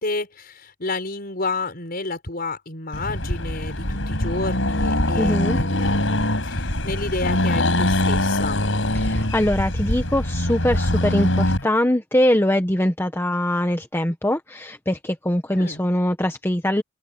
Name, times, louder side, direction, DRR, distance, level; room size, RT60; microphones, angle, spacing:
voice 1, 0.0-8.7 15.6-15.8, left 3 dB, 50° left, 5.8 m, -30 dB
Accelerating revving vroom, 2.9-11.6, left 1 dB, 75° left, 5.5 m, -23 dB
voice 2, 5.2-5.6 8.9-16.8, left 1 dB, 10° left, 1.1 m, -22 dB
open air
head